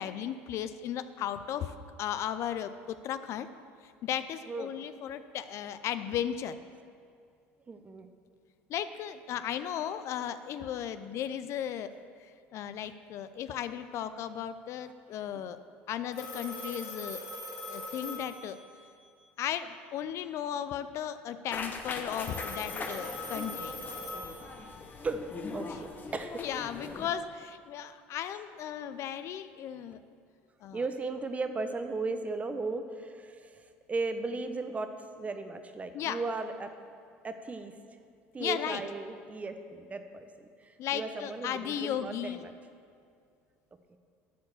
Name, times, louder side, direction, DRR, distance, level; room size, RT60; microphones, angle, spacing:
voice 1, 0.0-3.5 3.8-6.6 8.7-11.9 12.5-15.6 15.9-17.2 17.7-18.6 19.4-23.7 25.7-25.8 26.4-30.0 30.6-30.8 35.9-36.2 38.4-38.8 40.8-42.4, left 10 dB, 55° left, 12 dB, 0.5 m, -35 dB
voice 2, 7.7-8.1 25.0-25.2 25.5-26.4 30.7-33.5 33.9-34.9 35.2-36.7 37.2-37.7 38.3-40.3 40.6-42.5 43.9-44.0, right 3 dB, 25° right, 8 dB, 0.8 m, -36 dB
Telephone, 16.1-19.0 22.1-25.0, left 2 dB, 80° left, 2.5 m, -41 dB
sound 1, 21.5-27.1, left 4 dB, 35° left, 0.9 m, -40 dB
12.0 x 4.8 x 7.1 m, 2.3 s
supercardioid pair, 80°, 6 cm